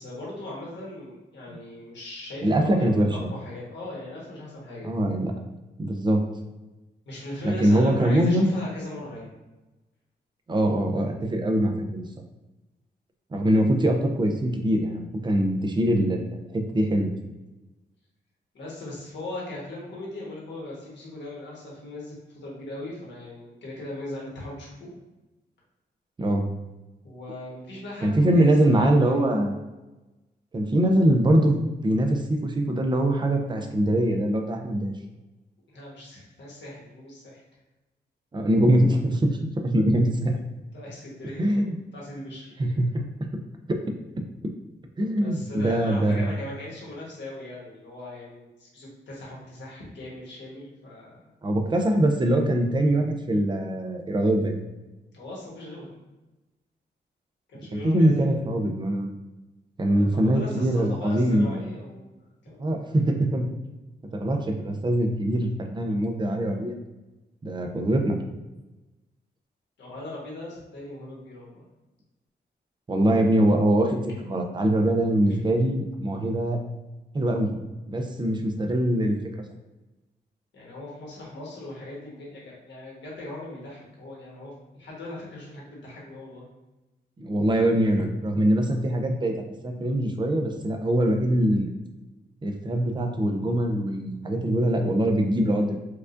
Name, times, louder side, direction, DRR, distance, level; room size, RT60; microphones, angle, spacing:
voice 1, 0.0-4.9 7.0-9.3 18.5-24.9 27.0-29.3 35.7-37.4 40.7-41.6 41.9-42.5 45.1-51.2 55.1-56.0 57.5-58.4 59.9-62.2 62.4-62.8 69.8-71.6 80.5-86.5, left 1 dB, 80° left, -4 dB, 1.3 m, -39 dB
voice 2, 2.4-3.1 4.8-5.3 5.8-6.2 7.4-8.5 10.5-12.0 13.3-17.1 26.2-26.5 28.0-29.6 30.5-34.9 38.3-39.3 39.6-40.4 41.4-41.8 42.6-43.3 43.7-43.8 45.0-46.3 51.4-54.6 57.7-59.1 59.8-61.6 62.6-63.5 64.1-66.8 67.4-68.2 72.9-76.6 77.1-77.6 77.9-79.2 87.2-89.3 89.6-91.7 92.4-95.8, right 1 dB, 25° right, 3 dB, 0.5 m, -23 dB
4.6 x 2.4 x 2.5 m, 1.1 s
wide cardioid pair, 110°, 18 cm